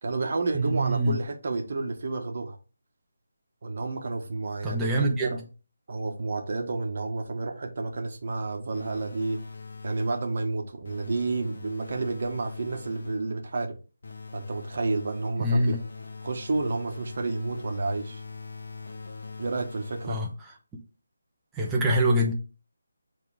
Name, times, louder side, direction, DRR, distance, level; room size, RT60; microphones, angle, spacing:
voice 1, 0.0-2.6 3.6-5.4 5.9-9.4 9.8-13.7 14.3-15.8 16.2-18.2 19.4-20.2, right 3 dB, 50° right, 1.4 m, -30 dB
voice 2, 0.6-1.2 4.6-5.3 15.4-15.8 20.1-20.3 21.6-22.3, right 1 dB, 10° right, 1.0 m, -24 dB
sound 1, 8.7-10.4 10.8-13.3 14.0-20.4, left 4 dB, 60° left, 1.4 m, -43 dB
7.4 x 3.8 x 3.5 m
figure-of-eight pair, 165°, 0 cm